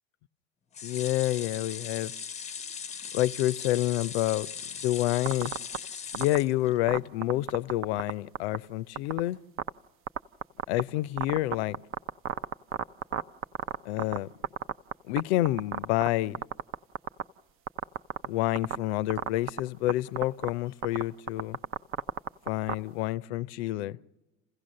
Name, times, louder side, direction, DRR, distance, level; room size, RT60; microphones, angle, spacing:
sound 1, 0.7-7.0 7.5-7.6 7.9-8.0, left 7 dB, 20° left, 0.6 m, -39 dB
voice 1, 0.8-2.1 3.1-4.5 4.8-5.5 6.1-9.4 10.7-11.8 13.9-14.3 15.1-16.4 18.3-21.6 22.5-24.0, left 16 dB, 75° left, 0.6 m, -28 dB
sound 2, 5.3-5.8 6.1-6.4 6.9-8.1 8.4-8.6 9.0-9.2 9.6-9.7 10.1-10.8 11.2-14.2 14.4-15.2 15.5-16.1 16.4-17.2 17.7-18.3 18.6-18.8 19.1-19.6 19.9-20.0 20.2-20.5 20.8-22.7, right 10 dB, 40° right, 0.6 m, -29 dB
28.0 x 16.0 x 6.5 m
supercardioid pair, 105°, 34 cm